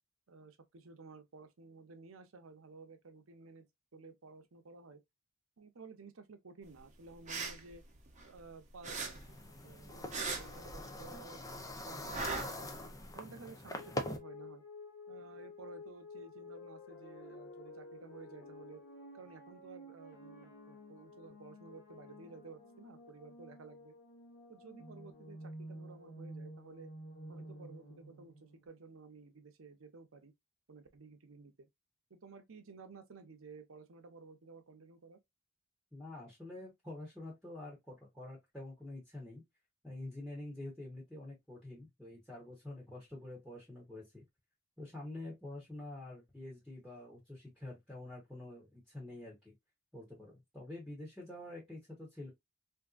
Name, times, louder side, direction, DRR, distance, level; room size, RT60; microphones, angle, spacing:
voice 1, 0.3-3.7 3.9-5.0 5.6-7.8 8.2-10.1 10.4-11.4 11.9-12.7 13.1-14.6 15.1-18.8 19.1-23.9 24.5-26.9 27.3-30.3 30.7-31.7 32.1-35.2, right 4 dB, 75° right, 0.7 m, -54 dB
sound 1, 7.1-8.5 8.8-11.2 11.5-13.1, right 4 dB, 35° right, 0.8 m, -40 dB
sound 2, 8.9-14.2, left 1 dB, 15° left, 0.5 m, -43 dB
sound 3, 13.8-28.7, left 1 dB, 55° left, 1.3 m, -51 dB
voice 2, 35.9-39.4 39.8-44.2 44.8-49.5 49.9-52.3, left 2 dB, ahead, 1.0 m, -47 dB
3.5 x 2.6 x 2.4 m
head